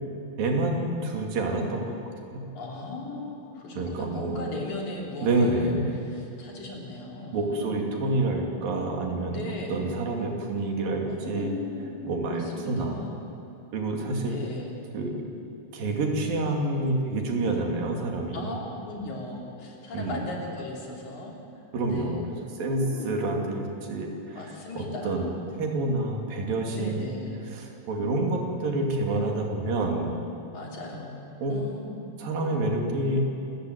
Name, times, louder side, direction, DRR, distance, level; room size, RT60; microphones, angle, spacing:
voice 1, 0.4-2.0 2.3-2.4 3.8-4.5 5.2-6.0 7.3-9.4 9.7-11.6 12.1-12.9 13.7-14.4 14.9-15.2 15.7-18.6 19.9-20.2 21.7-24.4 24.8-25.3 25.6-27.1 27.5-30.1 31.4-31.6 32.2-33.3, right 2 dB, 90° right, 1 dB, 4.5 m, -28 dB
voice 2, 2.5-7.8 9.3-9.8 11.1-12.0 12.3-13.2 14.3-14.7 18.3-21.3 21.9-22.2 22.8-23.1 24.3-25.4 26.7-27.4 27.9-28.0 30.5-32.0, left 2 dB, 60° left, -1 dB, 4.6 m, -38 dB
28.0 x 14.5 x 9.4 m, 2.9 s
omnidirectional pair, 3.9 m